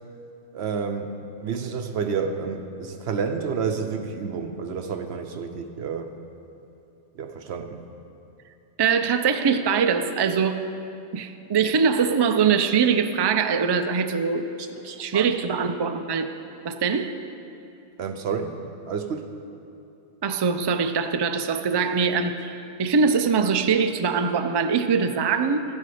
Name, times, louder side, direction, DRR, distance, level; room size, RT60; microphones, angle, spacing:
voice 1, 0.5-1.1 1.4-6.1 7.1-7.8 14.6-15.3 18.0-19.3, right 6 dB, 70° right, 6 dB, 0.9 m, -30 dB
voice 2, 8.8-10.6 11.1-14.5 15.0-16.3 16.6-17.2 20.2-25.6, right 6 dB, 40° right, 8 dB, 0.3 m, -22 dB
13.5 x 9.9 x 5.0 m, 2.7 s
omnidirectional pair, 1.2 m